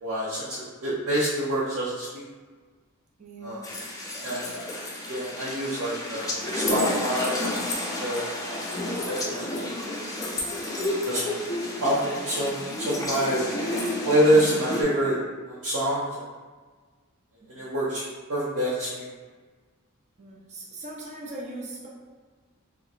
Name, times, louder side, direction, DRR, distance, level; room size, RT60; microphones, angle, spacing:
voice 1, 0.0-2.2 3.4-3.7 4.2-4.6 5.1-7.5 8.0-8.3 8.8-9.8 11.0-11.2 11.8-13.4 14.0-15.2 15.4-16.2 17.5-19.0, right 1 dB, 80° right, -9 dB, 0.7 m, -26 dB
voice 2, 3.2-3.7 17.4-17.5 20.2-21.9, right 2 dB, 35° right, -4 dB, 0.6 m, -40 dB
sound 1, 3.6-14.8, left 1 dB, 15° left, 0.4 m, -31 dB
3.0 x 2.0 x 3.9 m, 1.4 s
head